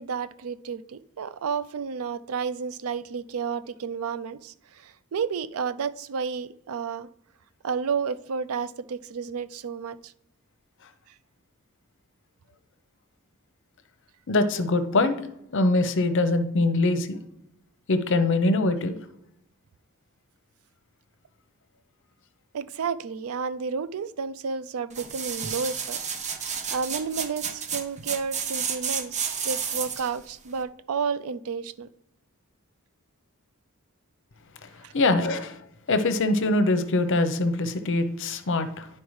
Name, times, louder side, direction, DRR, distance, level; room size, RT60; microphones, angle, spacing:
voice 1, 0.0-7.1 7.6-10.1 22.5-26.0 26.7-31.9 34.8-34.9, right 6 dB, 75° right, 14 dB, 0.4 m, -31 dB
voice 2, 14.3-15.2 15.5-17.2 17.9-19.0 34.6-35.6 35.9-38.9, left 2 dB, 60° left, 10 dB, 0.7 m, -23 dB
sound 1, 24.9-30.2 30.6-30.7, right 7 dB, 35° right, 0.6 m, -31 dB
11.0 x 4.4 x 3.2 m, 0.80 s
head